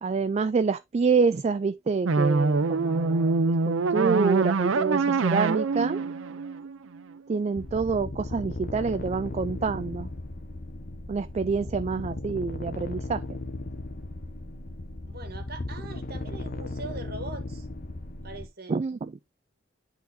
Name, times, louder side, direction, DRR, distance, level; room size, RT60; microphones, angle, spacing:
voice 1, 0.0-6.0 7.3-10.1 11.1-13.2 18.7-19.0, right 5 dB, 35° right, 0.3 m, -27 dB
sound 1, 2.1-7.2, right 4 dB, 90° right, 0.5 m, -25 dB
sound 2, 7.5-18.5, left 2 dB, 45° left, 0.9 m, -36 dB
voice 2, 15.1-17.7 18.2-18.8, right 3 dB, 50° right, 1.5 m, -41 dB
10.5 x 4.0 x 2.7 m
head